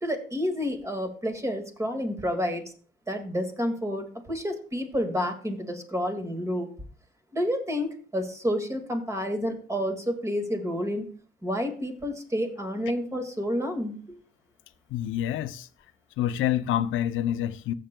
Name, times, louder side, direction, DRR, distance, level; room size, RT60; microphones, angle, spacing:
voice 1, 0.0-2.6 3.1-6.7 7.3-11.1 11.4-14.0, equal, 15° right, 1.8 m, -29 dB
voice 2, 14.9-15.7 16.2-17.7, left 11 dB, 85° left, 0.6 m, -27 dB
14.5 x 7.7 x 2.2 m
cardioid pair, 90°, 20 cm